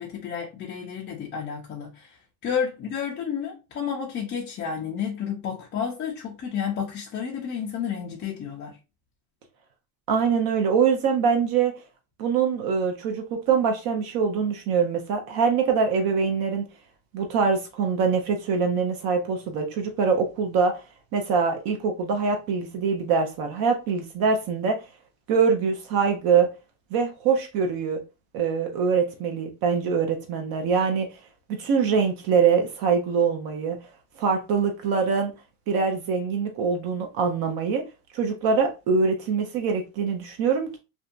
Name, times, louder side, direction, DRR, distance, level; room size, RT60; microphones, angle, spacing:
voice 1, 0.0-2.1 2.4-8.8, left 7 dB, 25° left, 0.4 m, -31 dB
voice 2, 10.1-11.7 12.2-16.7 17.1-20.8 21.1-24.8 25.3-26.5 26.9-28.0 28.3-31.1 31.5-33.8 34.2-35.3 35.7-37.8 38.1-40.8, right 5 dB, 50° right, 0.6 m, -23 dB
2.6 x 2.2 x 2.3 m
supercardioid pair, 115°, 49 cm